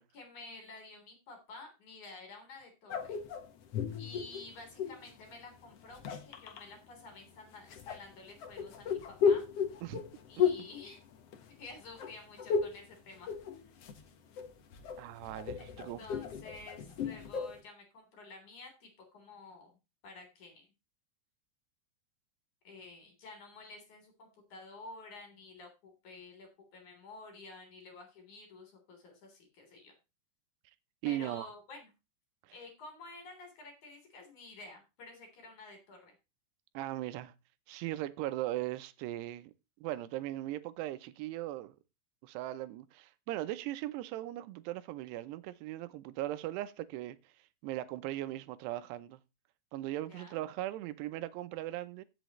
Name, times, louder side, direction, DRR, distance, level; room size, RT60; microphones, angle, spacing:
voice 1, 0.1-3.2 4.0-9.5 10.3-11.0 11.5-13.3 15.6-19.7 20.0-20.7 22.6-29.9 31.0-31.9 32.5-36.1 50.1-50.4, left 3 dB, 45° left, 4.8 m, -51 dB
sound 1, 2.9-5.1 5.8-6.6 7.7-11.7 12.0-12.9 13.1-14.0 14.4-17.6, left 6 dB, 70° left, 1.4 m, -34 dB
voice 2, 15.0-16.0 31.0-31.5 36.7-37.3 37.7-39.5 39.8-41.8 42.2-47.2 47.6-49.2 49.7-52.0, right 15 dB, 85° right, 2.8 m, -38 dB
15.5 x 7.3 x 3.1 m
omnidirectional pair, 4.8 m